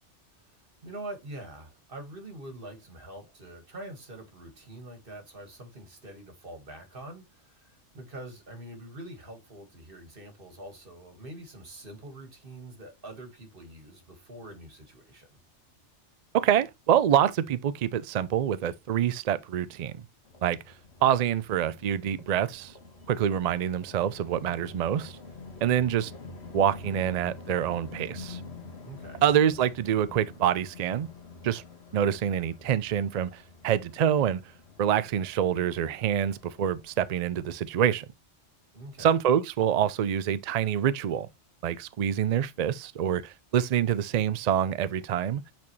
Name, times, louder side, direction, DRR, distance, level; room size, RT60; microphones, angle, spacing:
voice 1, 0.8-15.3 28.8-29.2 38.7-39.1, right 1 dB, 50° right, 2.0 m, -44 dB
voice 2, 16.3-19.9 20.4-20.6 21.0-22.7 23.1-25.2 25.6-26.1 26.5-28.4 29.2-31.1 31.4-31.6 31.9-34.4 34.8-38.1 39.0-41.3 41.6-45.4, right 9 dB, 70° right, 0.3 m, -26 dB
sound 1, 20.2-37.9, left 4 dB, 60° left, 1.8 m, -47 dB
8.3 x 4.4 x 3.2 m
omnidirectional pair, 1.2 m